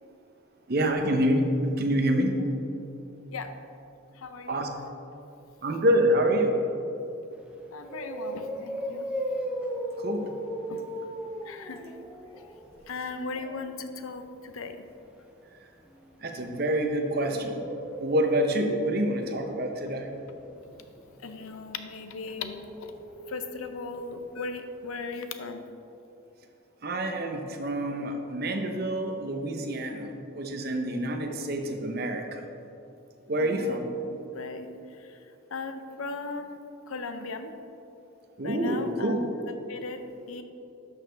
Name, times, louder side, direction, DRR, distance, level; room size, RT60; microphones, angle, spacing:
voice 1, 0.7-2.3 4.5-4.7 5.6-6.6 10.0-10.3 16.2-17.7 18.0-20.1 26.8-32.5 33.3-33.9 38.4-39.3, right 1 dB, 45° right, 4 dB, 0.8 m, -27 dB
voice 2, 4.2-4.6 7.7-9.1 10.7-10.8 11.4-11.8 12.9-14.9 21.2-22.9 23.3-25.7 33.4-33.8 34.1-35.2 35.5-36.6 36.9-37.5 38.4-39.3 39.7-40.4, left 4 dB, 85° left, 8 dB, 0.6 m, -37 dB
sound 1, 7.4-7.5 7.8-13.7 15.9-23.9 24.2-24.3 24.6-24.7, equal, 5° right, 0.6 m, -38 dB
11.5 x 6.2 x 3.4 m, 2.8 s
head